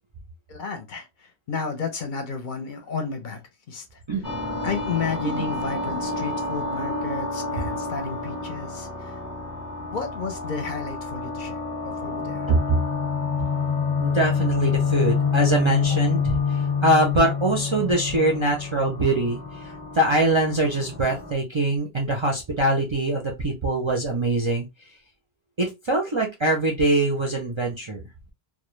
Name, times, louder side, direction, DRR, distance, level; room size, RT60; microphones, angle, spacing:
voice 1, 0.5-4.0 4.6-9.2 9.9-12.5, left 5 dB, 60° left, 0.6 m, -32 dB
sound 1, 4.2-21.3, left 5 dB, 20° left, 0.7 m, -28 dB
voice 2, 12.5-12.8 14.0-24.7 25.6-28.0, right 2 dB, 45° right, 0.4 m, -23 dB
2.2 x 2.0 x 3.0 m
omnidirectional pair, 1.1 m